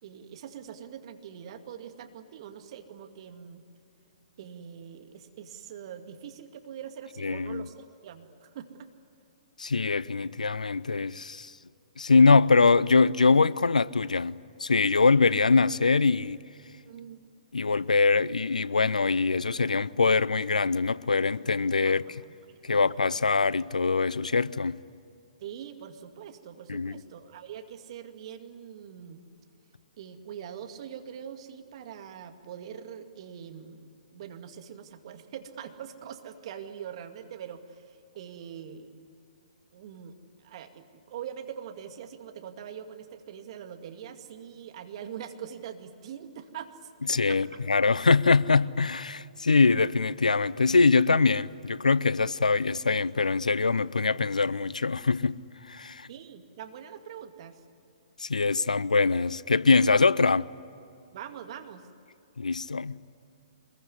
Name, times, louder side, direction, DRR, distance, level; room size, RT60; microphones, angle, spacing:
voice 1, 0.0-3.6 4.4-8.9 16.9-17.2 21.8-22.9 25.4-29.2 30.0-39.0 39.7-46.9 47.3-47.6 56.1-57.6 61.1-61.9, right 8 dB, 50° right, 2.2 m, -43 dB
voice 2, 7.2-7.6 9.6-11.5 12.0-16.4 17.5-22.0 22.6-24.8 26.7-27.0 47.1-55.4 55.7-56.1 58.2-60.5 62.4-63.0, left 4 dB, 85° left, 0.6 m, -23 dB
24.5 x 21.5 x 9.8 m
figure-of-eight pair, 125°, 4 cm